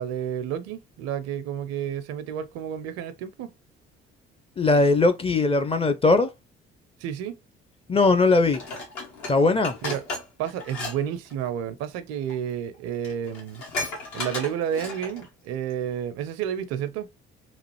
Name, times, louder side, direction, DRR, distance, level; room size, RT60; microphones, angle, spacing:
voice 1, 0.0-3.5 7.0-7.4 9.8-10.0 10.4-13.6 14.1-17.1, right 9 dB, 60° right, 0.5 m, -30 dB
voice 2, 4.6-6.3 7.9-8.6 9.3-9.8, left 3 dB, 20° left, 0.5 m, -20 dB
Dishes pots and pans, 8.5-11.0 11.3-11.5 12.3-12.4 12.7-12.8 13.0-15.3 15.7-15.8, left 2 dB, 70° left, 1.1 m, -34 dB
3.0 x 2.4 x 3.0 m
hypercardioid pair, 45°, 29 cm